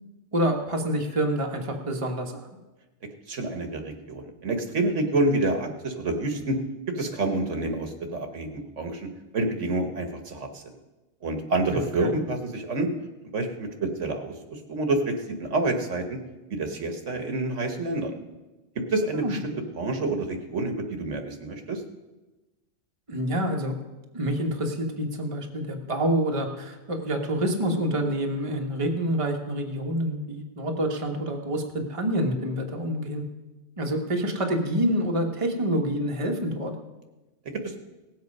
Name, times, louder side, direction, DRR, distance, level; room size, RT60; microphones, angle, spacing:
voice 1, 0.3-2.5 11.7-12.2 19.1-19.4 23.1-23.8 24.1-33.2 33.8-36.7, right 1 dB, 25° right, 2 dB, 1.3 m, -27 dB
voice 2, 3.3-6.6 6.9-9.1 9.3-10.6 11.2-12.9 13.3-16.2 16.5-18.2 18.7-21.8 37.6-37.8, right 2 dB, 70° right, 5 dB, 1.6 m, -28 dB
18.0 x 7.8 x 5.3 m, 1.1 s
omnidirectional pair, 1.3 m